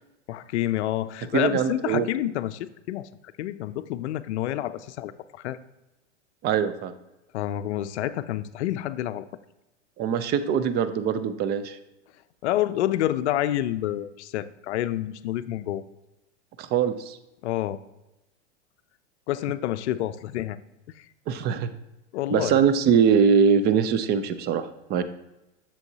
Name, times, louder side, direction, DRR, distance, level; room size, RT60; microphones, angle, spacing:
voice 1, 0.3-3.1 3.4-5.6 7.3-9.3 12.4-15.8 17.4-17.8 19.3-20.6 21.0-21.1 22.1-22.6, left 13 dB, 65° left, 13 dB, 0.5 m, -28 dB
voice 2, 1.3-2.1 6.4-6.9 10.0-11.8 16.6-17.2 21.3-21.7 22.3-25.0, right 7 dB, 30° right, 12 dB, 0.5 m, -22 dB
7.9 x 7.0 x 2.8 m, 0.95 s
hypercardioid pair, 110°, 36 cm